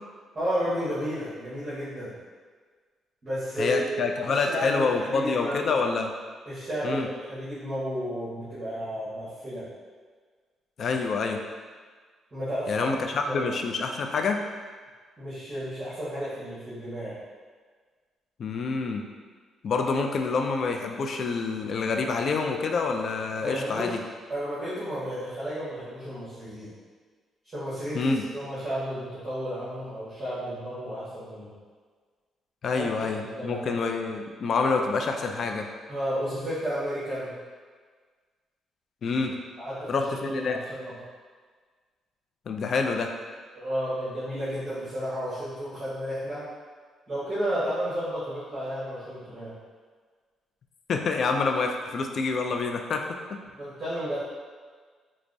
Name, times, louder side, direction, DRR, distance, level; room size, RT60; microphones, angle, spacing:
voice 1, 0.3-2.1 3.2-5.8 6.4-9.6 12.3-12.9 13.3-13.5 15.2-17.2 23.4-23.9 24.3-26.7 27.4-31.5 32.7-32.9 33.2-33.7 35.9-37.4 39.6-40.9 43.5-46.5 47.1-49.5 53.6-54.2, equal, 35° right, -12 dB, 1.3 m, -32 dB
voice 2, 3.6-6.1 6.8-7.1 10.8-11.4 12.7-14.4 18.4-19.0 19.6-24.0 27.9-28.2 32.6-35.7 39.0-39.4 39.9-40.6 42.5-43.1 50.9-53.0 53.3-53.4, left 4 dB, 55° left, 3 dB, 0.3 m, -27 dB
4.5 x 2.0 x 2.6 m, 1.5 s
cardioid pair, 90°, 0 cm